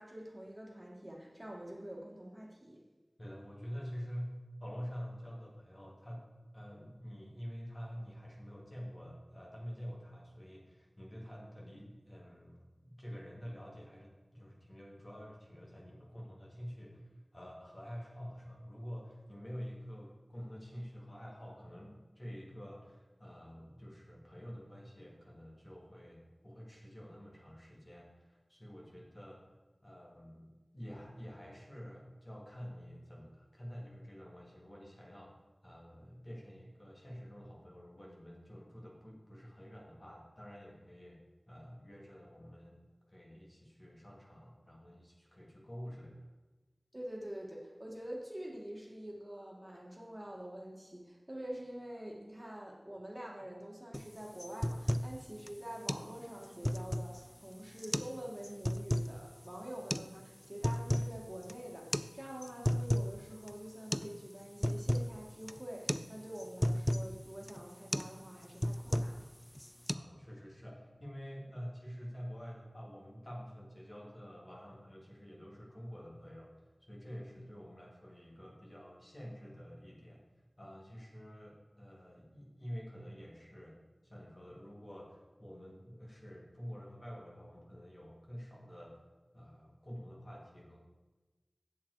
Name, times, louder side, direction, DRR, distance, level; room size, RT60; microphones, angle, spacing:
voice 1, 0.0-2.8 46.9-69.3, right 1 dB, 25° right, -2 dB, 1.8 m, -46 dB
voice 2, 3.2-6.3 6.5-29.4 29.8-35.4 35.6-41.2 41.5-42.8 43.1-46.3 69.9-76.5 76.8-80.2 80.6-83.8 84.0-89.0 89.3-90.8, equal, 45° left, -3 dB, 2.3 m, -48 dB
sound 1, 53.9-54.1 54.4-55.1 55.5-55.6 55.9-56.1 56.4-57.2 57.8-58.2 58.4-59.1 59.9-60.1 60.4-61.1 61.4-61.5 61.9-62.1 62.4-63.1 63.5-63.6 63.9-64.1 64.4-65.1 65.5-65.6 65.9-66.1 66.4-67.1 67.5-67.6 67.9-68.1 68.4-69.2 69.5-69.9, equal, 15° left, 0.3 m, -33 dB
7.7 x 7.3 x 4.7 m, 1.2 s
wide cardioid pair, 45°, 0 cm